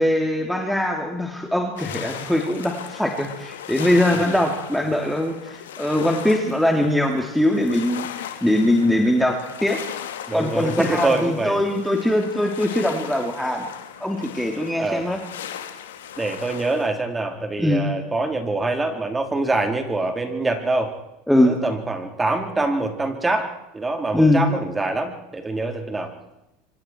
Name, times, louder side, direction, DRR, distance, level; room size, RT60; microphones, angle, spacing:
voice 1, 0.0-8.1 8.4-9.8 10.3-13.7 14.0-15.2 17.6-17.9 21.3-21.6 24.1-24.4, left 1 dB, ahead, 2 dB, 3.1 m, -21 dB
sound 1, 1.8-16.9, left 10 dB, 85° left, 2.4 m, -37 dB
voice 2, 10.3-11.6 14.8-15.1 16.2-20.9 21.4-26.1, right 2 dB, 15° right, 4 dB, 4.3 m, -25 dB
26.0 x 25.0 x 4.7 m, 0.89 s
hypercardioid pair, 90°, 0 cm